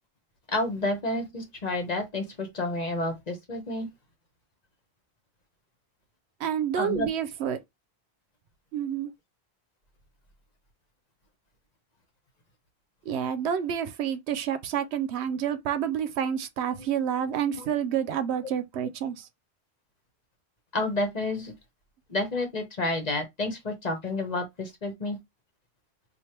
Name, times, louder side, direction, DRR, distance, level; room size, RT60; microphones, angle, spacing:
voice 1, 0.5-3.9 6.8-7.1 20.7-21.5 22.1-25.2, left 2 dB, 40° left, 1.0 m, -30 dB
voice 2, 6.4-7.6 8.7-9.1 13.0-19.3, right 9 dB, 85° right, 0.9 m, -29 dB
3.3 x 2.5 x 4.3 m
omnidirectional pair, 1.1 m